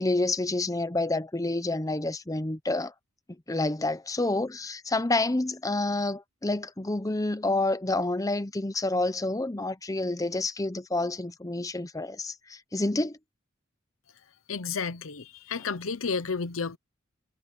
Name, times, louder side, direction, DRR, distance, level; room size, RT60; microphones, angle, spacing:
voice 1, 0.0-2.9 3.5-13.2, left 2 dB, 15° left, 0.8 m, -28 dB
voice 2, 14.5-16.8, left 5 dB, 85° left, 0.9 m, -31 dB
head